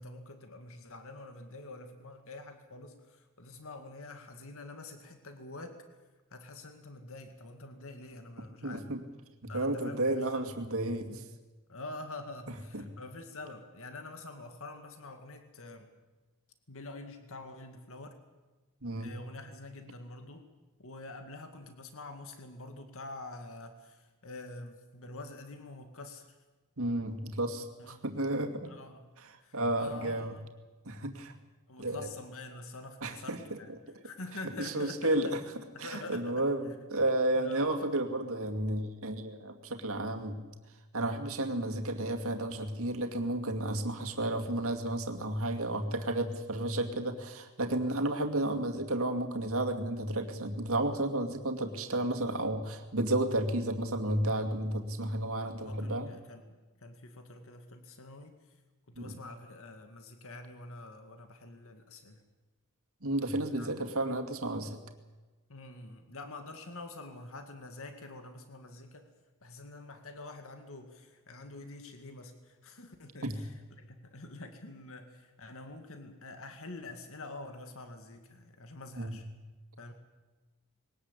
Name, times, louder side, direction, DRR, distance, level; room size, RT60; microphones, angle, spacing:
voice 1, 0.0-5.8 6.3-8.9 9.5-10.5 11.7-15.9 16.7-18.2 19.0-20.4 20.8-26.4 27.8-28.0 28.6-29.1 29.4-30.5 31.7-33.7 34.0-35.3 35.7-36.4 37.3-37.8 44.2-44.4 55.6-58.6 58.9-62.2 63.4-63.7 65.5-69.1 69.4-79.3 79.8-79.9, left 2 dB, 65° left, 6 dB, 2.2 m, -46 dB
voice 2, 8.6-9.0 9.4-11.2 12.7-12.9 18.8-19.1 26.8-28.7 29.5-30.3 30.8-31.3 31.8-32.1 33.0-33.6 34.6-35.3 35.8-40.4 40.9-56.1 59.0-59.2 63.0-64.8 73.2-73.4 79.0-79.2, right 1 dB, 70° right, 5 dB, 2.4 m, -32 dB
21.5 x 18.5 x 8.3 m, 1.2 s
head